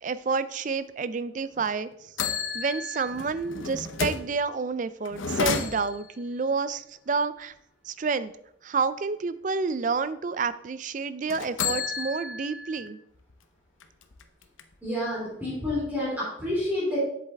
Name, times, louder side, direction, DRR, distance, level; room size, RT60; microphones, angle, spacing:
voice 1, 0.0-2.1 2.5-7.5 7.9-8.3 8.6-13.0, right 4 dB, 40° right, 15 dB, 0.4 m, -29 dB
sound 1, 1.6-1.7 2.2-4.3 5.0-6.2 11.3-12.9 13.3-13.4 13.8-14.9, left 5 dB, 85° left, 0.8 m, -32 dB
voice 2, 14.8-17.0, left 1 dB, 10° right, -9 dB, 3.4 m, -29 dB
7.8 x 7.5 x 3.5 m, 0.74 s
head